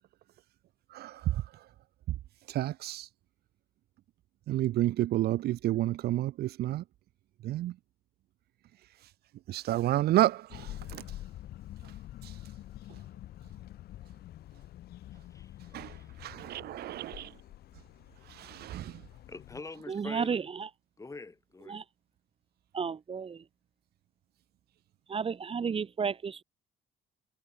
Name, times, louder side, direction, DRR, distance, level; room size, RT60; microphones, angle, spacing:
voice 1, 0.9-1.7 2.1-2.2 2.5-3.1 4.5-6.8 7.4-7.8 9.5-11.0 12.2-12.4 15.7-17.4 18.3-19.0, right 14 dB, 70° right, 1.5 m, -30 dB
sound 1, 10.5-19.6, left 13 dB, 70° left, 3.7 m, -47 dB
voice 2, 19.3-20.4 21.0-21.8, left 3 dB, 20° left, 5.7 m, -44 dB
voice 3, 19.9-20.7 21.7-21.8 22.7-23.4 25.1-26.4, right 6 dB, 35° right, 2.3 m, -33 dB
cardioid pair, 110°, 17 cm